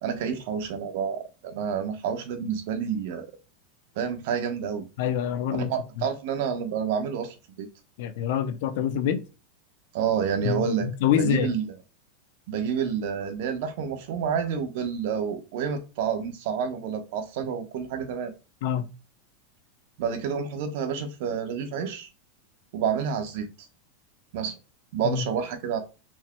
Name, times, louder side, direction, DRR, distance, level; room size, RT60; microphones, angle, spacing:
voice 1, 0.0-3.3 4.0-4.8 5.5-7.7 9.9-10.9 11.2-11.7 12.5-18.3 20.0-22.1 22.7-23.7 24.3-24.5 24.9-25.8, right 7 dB, 65° right, 1.0 m, -29 dB
voice 2, 5.0-5.7 8.0-9.2 10.4-11.5 18.6-18.9 25.0-25.2, left 9 dB, 65° left, 0.7 m, -26 dB
4.6 x 4.3 x 2.2 m
supercardioid pair, 135°, 0 cm